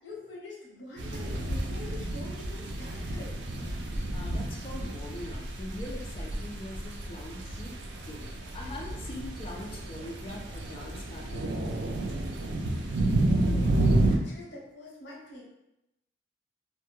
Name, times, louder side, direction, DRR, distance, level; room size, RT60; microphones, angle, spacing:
voice 1, 0.0-3.3 12.8-12.9 13.1-15.4, left 2 dB, 75° left, -4 dB, 0.8 m, -45 dB
sound 1, 1.0-14.2, right 1 dB, 75° right, 0.4 m, -30 dB
voice 2, 4.1-7.7 8.1-8.3 8.5-11.7, left 1 dB, 30° left, 0 dB, 0.3 m, -42 dB
2.1 x 2.1 x 2.9 m, 0.90 s
head